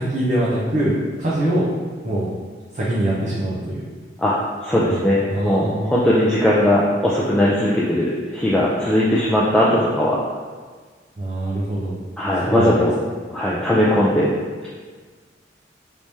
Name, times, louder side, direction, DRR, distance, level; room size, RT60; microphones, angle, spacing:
voice 1, 0.0-1.7 2.0-2.3 2.7-3.8 4.9-5.0 5.3-5.9 11.2-12.0 12.5-12.8, right 1 dB, 40° right, -8 dB, 0.6 m, -23 dB
voice 2, 4.6-10.2 12.2-12.9 13.3-14.3, left 1 dB, 5° left, -7 dB, 0.3 m, -19 dB
3.3 x 3.1 x 2.7 m, 1.5 s
head